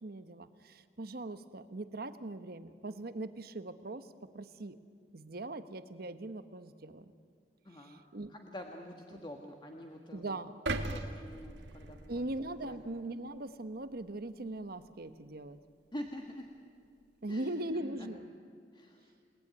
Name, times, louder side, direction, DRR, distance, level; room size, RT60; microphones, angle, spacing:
voice 1, 0.0-4.1 4.3-4.8 5.1-7.1 8.1-8.3 9.1-9.2 10.1-10.6 12.1-15.6 17.2-18.3, right 2 dB, 60° right, 11 dB, 1.1 m, -40 dB
voice 2, 7.6-8.0 8.3-10.4 10.9-12.9 15.9-16.5 17.3-18.1 18.7-19.1, equal, 25° left, 2 dB, 1.6 m, -47 dB
sound 1, 10.7-12.8 13.3-13.4, right 2 dB, 90° right, 1.9 m, -38 dB
29.0 x 19.0 x 9.6 m, 2.3 s
head